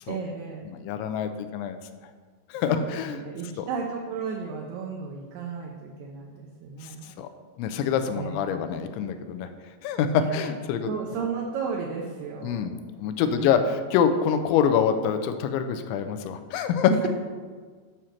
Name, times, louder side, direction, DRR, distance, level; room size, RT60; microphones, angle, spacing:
voice 1, 0.1-0.7 2.7-7.2 8.2-8.4 10.1-10.6 10.9-12.7 13.2-13.6, right 5 dB, 75° right, -1 dB, 2.6 m, -34 dB
voice 2, 0.7-1.8 2.5-3.2 3.6-3.7 7.2-7.3 7.6-9.5 9.8-11.0 12.4-12.7 13.0-16.9, left 7 dB, 90° left, 8 dB, 3.0 m, -25 dB
9.1 x 5.8 x 6.3 m, 1.5 s
omnidirectional pair, 5.2 m